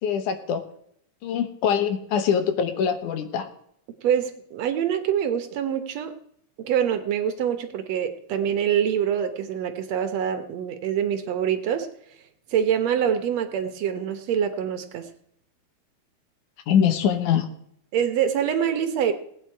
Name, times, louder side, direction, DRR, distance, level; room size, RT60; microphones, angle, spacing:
voice 1, 0.0-0.6 1.2-3.5 16.7-17.5, left 8 dB, 85° left, 8 dB, 2.7 m, -23 dB
voice 2, 4.0-6.1 6.6-11.9 12.5-15.1 17.9-19.1, right 8 dB, 65° right, 8 dB, 2.1 m, -25 dB
18.0 x 9.2 x 4.6 m, 0.70 s
omnidirectional pair, 3.5 m